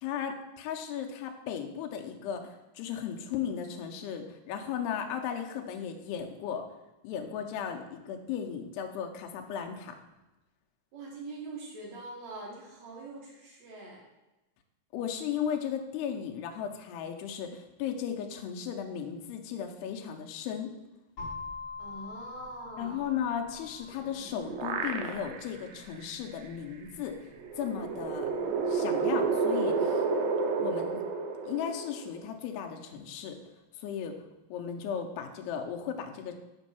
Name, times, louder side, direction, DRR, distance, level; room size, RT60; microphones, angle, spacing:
voice 1, 0.0-6.7 7.0-10.0 14.9-20.7 22.8-27.2 27.6-28.3 28.7-30.0 30.6-31.0 31.4-33.4 33.8-34.2 34.5-36.4, left 8 dB, 85° left, 3 dB, 2.7 m, -36 dB
voice 2, 10.9-14.0 21.8-23.0, right 2 dB, 60° right, -3 dB, 1.9 m, -43 dB
sound 1, 21.2-29.0, left 4 dB, 40° left, 2.6 m, -46 dB
sound 2, 23.9-25.6 26.0-26.1 27.4-32.2, right 4 dB, 75° right, 2.1 m, -30 dB
6.2 x 5.3 x 5.7 m, 1.0 s
omnidirectional pair, 4.8 m